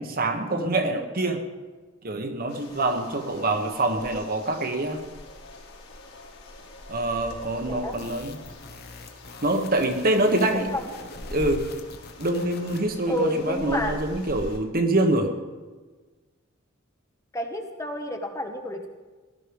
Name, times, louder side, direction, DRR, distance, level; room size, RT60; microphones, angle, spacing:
voice 1, 0.0-1.4 2.0-5.0 6.9-8.4 9.4-10.7 11.3-11.6 12.2-15.3, right 2 dB, 45° right, 5 dB, 1.4 m, -25 dB
sound 1, 2.5-14.6, left 1 dB, 90° left, 4.0 m, -43 dB
sound 2, 7.9-13.0, left 3 dB, 50° left, 1.4 m, -44 dB
voice 2, 10.5-10.9 13.1-14.0 17.3-18.9, left 1 dB, 15° left, 4 dB, 1.2 m, -30 dB
17.5 x 12.0 x 5.3 m, 1.3 s
head